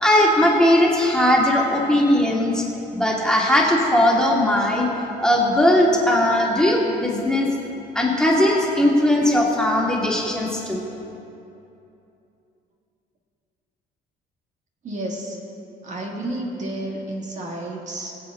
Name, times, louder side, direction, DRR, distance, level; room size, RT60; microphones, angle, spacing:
voice 1, 0.0-2.6 2.9-4.9 5.2-7.5 7.9-10.9, left 1 dB, 5° left, -3 dB, 2.1 m, -19 dB
voice 2, 14.8-15.4 15.8-18.2, right 1 dB, 45° right, -1 dB, 1.8 m, -31 dB
21.5 x 7.6 x 3.7 m, 2.8 s
cardioid pair, 110°, 17 cm